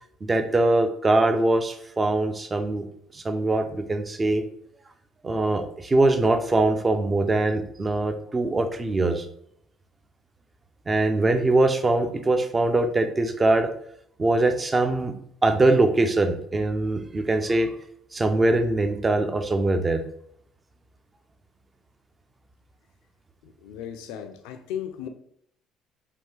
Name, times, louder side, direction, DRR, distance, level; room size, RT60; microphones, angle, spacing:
voice 1, 0.2-2.8 3.1-4.4 5.2-9.2 10.9-13.7 14.2-15.1 15.4-17.7 18.1-20.0, right 2 dB, 30° right, 0.5 m, -22 dB
voice 2, 23.4-25.1, left 9 dB, 80° left, 0.4 m, -36 dB
3.5 x 2.3 x 3.1 m
hypercardioid pair, 65°, 0 cm